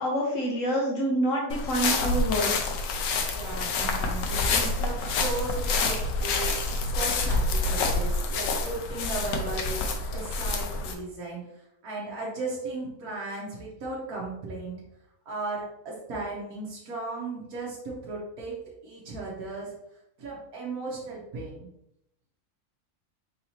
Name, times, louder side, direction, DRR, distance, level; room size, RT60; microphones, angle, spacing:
voice 1, 0.0-2.5, right 1 dB, 65° left, -2 dB, 1.1 m, -27 dB
sound 1, 1.5-10.9, left 3 dB, 80° left, 1.1 m, -27 dB
voice 2, 3.3-14.8 15.2-19.7 20.2-21.7, right 3 dB, 75° right, -4 dB, 1.4 m, -36 dB
4.1 x 3.9 x 2.9 m, 0.80 s
omnidirectional pair, 1.5 m